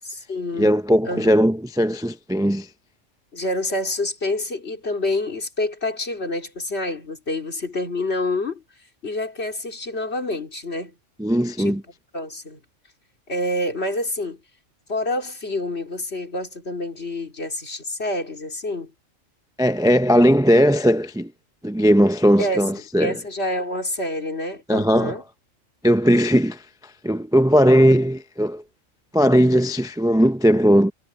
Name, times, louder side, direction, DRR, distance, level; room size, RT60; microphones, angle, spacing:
voice 1, 0.1-0.7 1.0-1.3 3.3-8.6 9.0-10.9 11.6-11.8 12.1-12.6 13.3-14.4 14.9-18.9 22.4-25.2, left 1 dB, 55° left, 3.5 m, -27 dB
voice 2, 0.6-2.7 11.2-11.8 19.6-21.3 21.6-23.1 24.7-25.2 25.8-26.6 27.0-28.6 29.1-30.9, equal, 5° right, 0.4 m, -18 dB
omnidirectional pair, 1.3 m